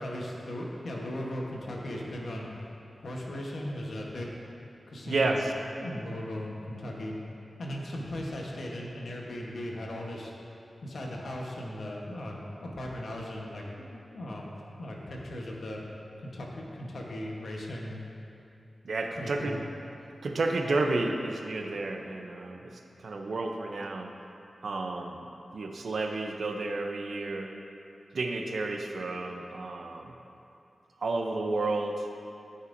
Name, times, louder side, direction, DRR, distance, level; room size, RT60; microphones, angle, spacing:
voice 1, 0.0-2.5 3.0-4.3 4.9-5.4 5.8-7.2 7.6-10.3 10.8-14.5 14.8-15.8 16.2-16.5 16.7-18.0 19.2-19.6, left 1 dB, 80° left, -2 dB, 1.1 m, -37 dB
voice 2, 5.1-5.5 18.8-19.6 20.2-24.1 24.6-27.5 28.1-30.1 31.0-32.1, right 2 dB, 75° right, 3 dB, 0.6 m, -31 dB
13.0 x 5.6 x 2.6 m, 2.7 s
wide cardioid pair, 75°, 0 cm